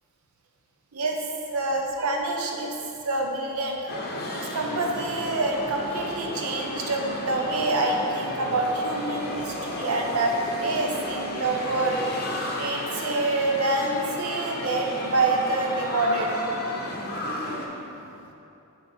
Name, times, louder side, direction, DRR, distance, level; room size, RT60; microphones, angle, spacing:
voice 1, 1.5-2.7 3.0-4.0 4.5-10.3 10.6-12.0 12.3-16.4, right 2 dB, 70° right, 1 dB, 0.8 m, -26 dB
sound 1, 3.9-17.7, left 1 dB, 45° left, 0.8 m, -33 dB
7.9 x 4.5 x 4.4 m, 2.8 s
head